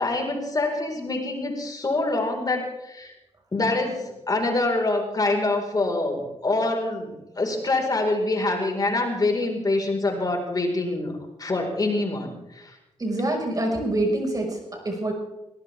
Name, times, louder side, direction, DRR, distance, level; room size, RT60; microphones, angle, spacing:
voice 1, 0.0-3.1 3.5-11.1 11.4-12.7, left 2 dB, 35° left, 2 dB, 4.7 m, -25 dB
voice 2, 13.0-15.1, right 1 dB, 35° right, 1 dB, 5.3 m, -26 dB
20.5 x 18.0 x 3.6 m, 0.95 s
cardioid pair, 70°, 11 cm